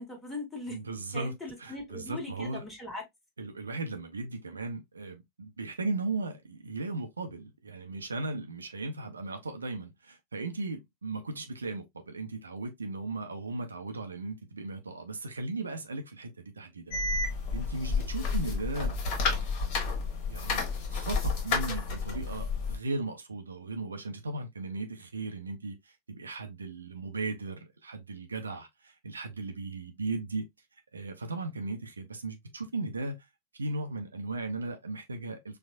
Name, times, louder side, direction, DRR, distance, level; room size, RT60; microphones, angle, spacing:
voice 1, 0.0-0.8 1.1-3.0 18.2-18.4, left 2 dB, 10° left, 1.6 m, -40 dB
voice 2, 0.7-2.6 3.4-17.2 17.5-19.9 20.3-20.6 20.9-30.4 30.9-33.3 33.5-35.6, right 3 dB, 75° right, 0.7 m, -37 dB
sound 1, 16.9-22.8, left 4 dB, 40° left, 1.3 m, -31 dB
4.5 x 2.4 x 2.5 m
figure-of-eight pair, 90°, 0 cm